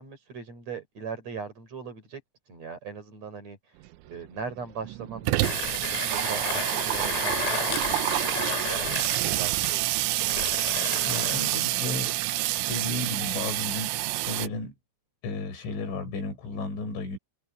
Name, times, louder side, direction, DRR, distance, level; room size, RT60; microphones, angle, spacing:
voice 1, 0.0-2.2 2.5-10.1, right 5 dB, 35° right, 5.6 m, -40 dB
Water tap faucet / Sink (filling or washing), 3.9-4.0 4.2-4.3 4.6-14.5, right 18 dB, 80° right, 2.9 m, -28 dB
Mechanisms, 5.4-11.6, left 9 dB, 85° left, 5.3 m, -34 dB
voice 2, 11.0-12.2 12.7-14.7 15.2-17.2, left 3 dB, 65° left, 8.2 m, -33 dB
omnidirectional pair, 5.9 m